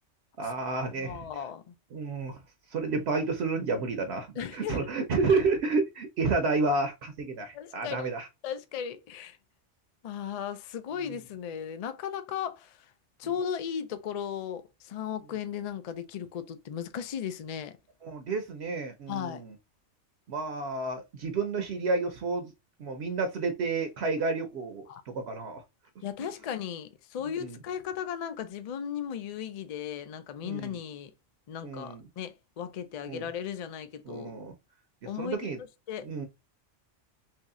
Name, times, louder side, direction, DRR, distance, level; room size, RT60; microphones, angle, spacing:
voice 1, 0.4-1.3 1.9-2.4 2.7-8.3 18.0-19.5 20.3-22.5 22.8-24.8 25.1-25.6 27.4-27.6 30.4-30.8 31.6-32.0 33.1-33.3 34.1-34.5 35.2-35.6 36.0-36.3, right 3 dB, 65° right, 0.8 m, -30 dB
voice 2, 1.0-1.7 4.4-4.9 7.5-8.1 8.4-9.4 10.0-12.8 13.2-17.8 19.1-19.4 24.9-25.0 26.0-31.1 31.5-34.4 35.1-36.1, left 8 dB, 80° left, 0.3 m, -36 dB
3.1 x 2.7 x 3.5 m
omnidirectional pair, 1.3 m